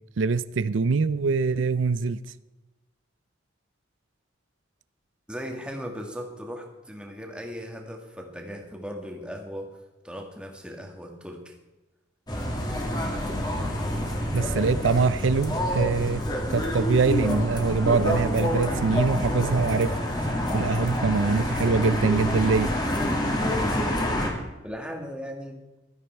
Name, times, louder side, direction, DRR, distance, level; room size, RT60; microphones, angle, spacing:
voice 1, 0.2-2.2 14.3-16.2 16.5-20.0 20.5-22.7, right 4 dB, 90° right, 0.5 m, -24 dB
voice 2, 5.3-9.7 10.0-11.6 24.6-25.6, equal, 5° right, 1.9 m, -37 dB
sound 1, 12.3-24.3, equal, 20° left, 2.3 m, -27 dB
15.5 x 13.0 x 4.6 m
head